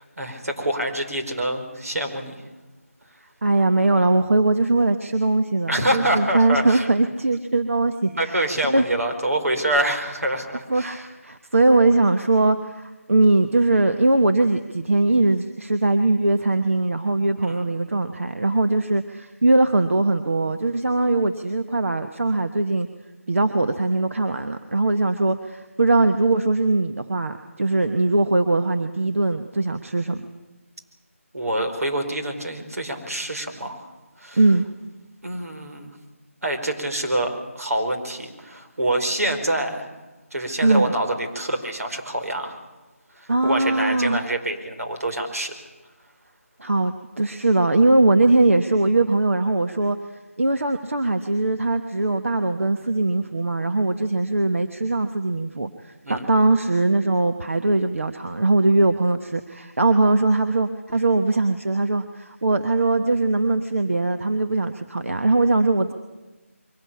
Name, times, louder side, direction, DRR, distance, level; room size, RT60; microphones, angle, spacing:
voice 1, 0.2-2.4 5.7-6.9 8.1-11.1 17.5-17.6 31.3-33.9 34.2-34.4 35.2-35.9 36.4-39.9 40.3-42.6 43.2-45.5 56.0-56.3, right 1 dB, 85° right, 5 dB, 4.7 m, -26 dB
voice 2, 3.4-8.9 10.7-22.9 23.3-30.3 34.4-34.6 40.6-40.9 43.3-44.2 46.6-50.0 50.4-65.9, right 2 dB, 65° right, 7 dB, 1.3 m, -21 dB
23.0 x 17.0 x 8.6 m, 1.1 s
figure-of-eight pair, 175°, 8 cm